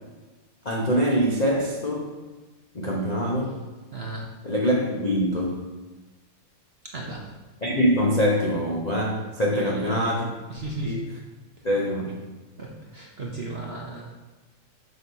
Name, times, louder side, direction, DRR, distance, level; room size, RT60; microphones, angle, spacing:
voice 1, 0.6-2.1 2.7-3.6 4.4-5.6 7.6-10.2 10.8-11.1 11.6-12.2, equal, 75° left, -3 dB, 0.3 m, -24 dB
voice 2, 3.9-4.3 6.9-7.3 9.5-10.2 10.5-11.0 12.6-14.1, right 2 dB, 55° right, -2 dB, 0.7 m, -35 dB
6.3 x 4.2 x 6.2 m, 1.2 s
omnidirectional pair, 2.2 m